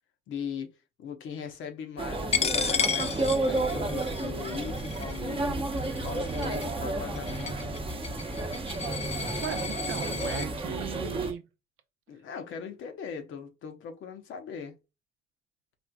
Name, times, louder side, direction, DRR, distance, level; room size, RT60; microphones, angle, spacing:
voice 1, 0.3-5.7 6.0-7.8 12.1-14.8, left 7 dB, 75° left, 0.9 m, -39 dB
sound 1, 2.0-11.3, right 2 dB, 25° right, 0.7 m, -31 dB
Coin (dropping), 2.3-10.5, left 6 dB, 35° left, 0.5 m, -33 dB
voice 2, 9.4-11.4, right 9 dB, 85° right, 0.6 m, -37 dB
4.3 x 2.5 x 2.2 m
cardioid pair, 90°, 20 cm